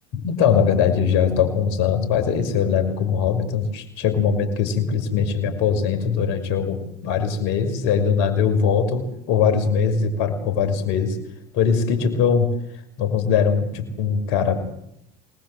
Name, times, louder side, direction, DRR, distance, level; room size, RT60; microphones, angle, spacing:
voice 1, 0.1-11.2 11.5-12.5 13.0-14.7, left 6 dB, 70° left, 7 dB, 5.9 m, -21 dB
27.0 x 20.0 x 7.9 m, 0.77 s
supercardioid pair, 90°, 20 cm